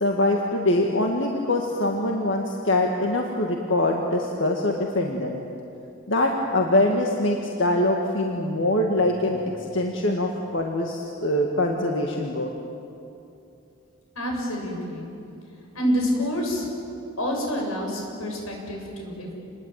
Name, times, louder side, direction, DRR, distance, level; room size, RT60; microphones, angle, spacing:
voice 1, 0.0-5.4 6.1-12.5, left 1 dB, 60° left, 1 dB, 2.0 m, -23 dB
voice 2, 14.2-15.1 15.7-16.7 17.2-19.3, equal, 85° left, 0 dB, 7.3 m, -27 dB
28.0 x 21.0 x 9.2 m, 2.7 s
head